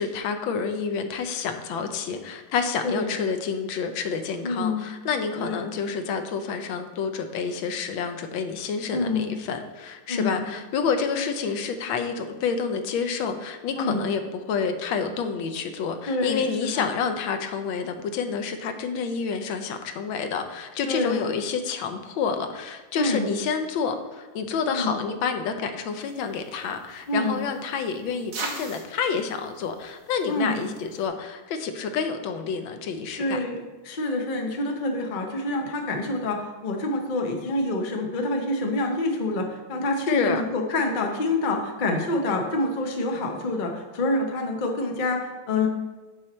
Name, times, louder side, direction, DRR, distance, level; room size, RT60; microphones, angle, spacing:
voice 1, 0.0-14.2 14.5-33.4 40.1-40.4, left 5 dB, 80° left, 7 dB, 1.4 m, -28 dB
voice 2, 4.4-4.9 5.4-5.6 8.9-9.3 10.1-10.4 13.7-14.1 16.1-16.9 20.9-21.3 23.0-23.3 24.7-25.0 27.1-27.4 30.3-30.6 33.2-45.7, left 2 dB, 55° left, 2 dB, 0.5 m, -27 dB
sound 1, 26.0-31.1, right 4 dB, 65° right, 1.6 m, -41 dB
6.5 x 5.5 x 4.2 m, 1.2 s
omnidirectional pair, 2.2 m